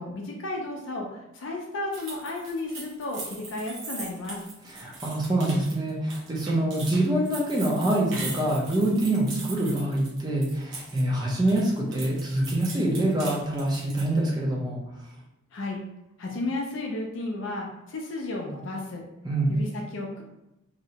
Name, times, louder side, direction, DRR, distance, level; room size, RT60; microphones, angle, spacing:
voice 1, 0.0-4.4 15.5-15.8 16.2-19.0 19.5-20.2, left 2 dB, 65° left, -1 dB, 0.4 m, -33 dB
sound 1, 1.9-11.0 11.3-14.2, right 3 dB, 60° right, 0.8 m, -40 dB
voice 2, 4.6-14.8 19.2-19.5, right 1 dB, 20° right, -3 dB, 0.5 m, -25 dB
2.7 x 2.1 x 2.8 m, 0.91 s
head